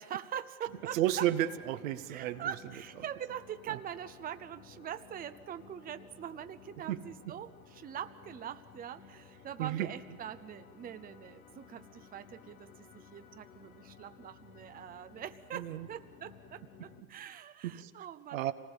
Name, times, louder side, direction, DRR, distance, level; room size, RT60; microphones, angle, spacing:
voice 1, 0.0-1.3 2.1-18.4, right 9 dB, 20° right, 11 dB, 0.8 m, -43 dB
sound 1, 0.7-17.0, left 6 dB, 85° left, 2.4 m, -56 dB
voice 2, 0.9-2.5 6.9-7.3 9.6-9.9 15.5-15.9 17.6-17.9 18.3-18.5, right 13 dB, 70° right, 10 dB, 1.3 m, -32 dB
26.5 x 19.0 x 7.2 m, 1.4 s
hypercardioid pair, 90°, 42 cm